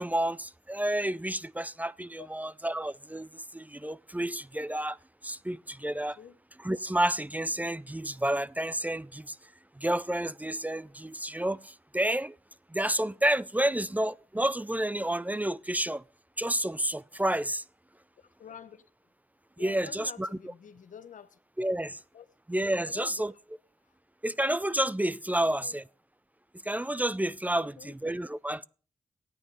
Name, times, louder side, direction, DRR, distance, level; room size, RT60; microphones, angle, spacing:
voice 1, 0.0-5.0 5.2-6.2 6.6-9.4 9.8-12.4 12.7-16.0 16.4-17.6 19.6-20.3 21.6-21.9 22.5-23.3 24.2-25.8 26.6-28.6, right 1 dB, 10° right, 0.5 m, -30 dB
voice 2, 18.2-18.8 19.6-21.4 22.1-22.3 22.8-23.3 25.3-25.8 27.5-27.9, left 8 dB, 85° left, 1.0 m, -48 dB
13.5 x 9.5 x 5.4 m
cardioid pair, 50°, 13 cm